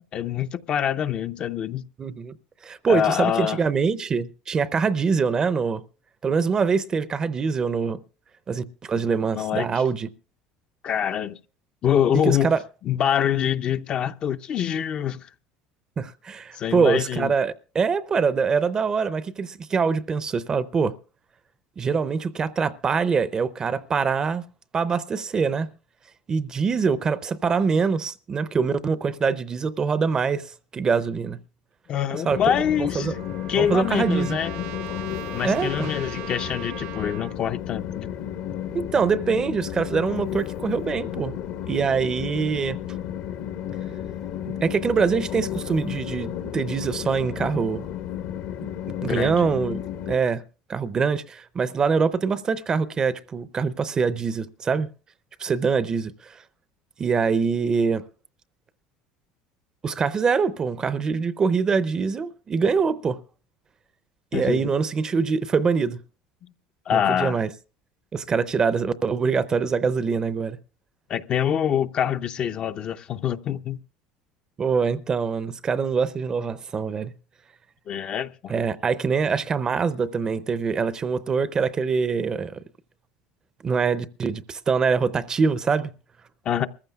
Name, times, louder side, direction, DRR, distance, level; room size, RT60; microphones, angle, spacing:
voice 1, 0.1-1.8 2.9-3.6 9.3-9.7 10.8-11.4 11.8-12.5 12.8-15.3 16.5-17.3 31.9-33.1 33.5-34.7 35.3-38.1 49.0-49.5 64.3-64.7 66.4-66.5 66.9-67.4 71.1-73.8 77.9-78.5 86.5-86.7, left 9 dB, 45° left, 0.6 m, -25 dB
voice 2, 2.0-2.4 2.6-5.8 6.2-8.0 8.5-10.1 12.2-12.6 16.0-21.0 21.8-24.5 24.7-25.7 26.3-31.4 32.1-33.1 33.6-34.4 35.4-35.9 38.7-41.3 41.7-42.8 44.5-47.9 49.0-49.8 50.1-50.4 50.7-54.9 55.4-56.4 57.0-58.0 59.8-63.2 64.3-66.0 66.9-67.5 68.1-70.6 74.6-77.1 78.5-82.6 83.6-85.9, right 5 dB, 30° right, 0.6 m, -24 dB
Trumpet, 32.2-37.4, right 13 dB, 75° right, 1.0 m, -40 dB
Train, 32.3-50.2, left 10 dB, 70° left, 1.2 m, -33 dB
23.0 x 14.5 x 2.3 m
supercardioid pair, 110°, 3 cm